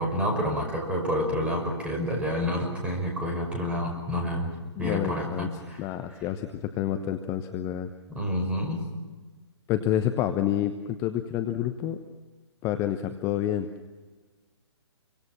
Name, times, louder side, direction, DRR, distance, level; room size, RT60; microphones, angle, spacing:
voice 1, 0.0-4.5 4.8-5.8 8.1-8.8, equal, 10° right, 0 dB, 5.9 m, -28 dB
voice 2, 4.8-5.5 5.8-7.9 9.7-12.0 12.6-13.7, left 11 dB, 20° left, 8 dB, 1.0 m, -28 dB
26.5 x 25.0 x 6.1 m, 1.3 s
figure-of-eight pair, 130°, 15 cm